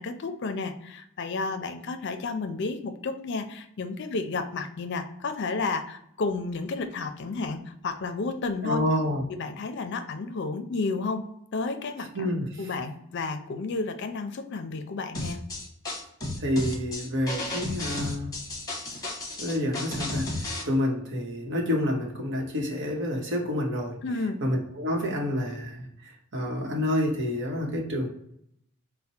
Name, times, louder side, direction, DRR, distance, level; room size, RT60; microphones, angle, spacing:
voice 1, 0.0-8.8 9.3-11.2 11.5-12.3 12.6-15.4 24.0-24.4, left 3 dB, 60° left, 8 dB, 0.5 m, -32 dB
voice 2, 8.6-9.2 12.1-12.6 16.4-18.3 19.4-20.3 20.6-23.9 24.4-28.1, left 1 dB, 60° right, 0 dB, 1.0 m, -28 dB
sound 1, 15.1-20.6, left 2 dB, 20° left, 1.0 m, -33 dB
4.4 x 2.1 x 4.2 m, 0.72 s
head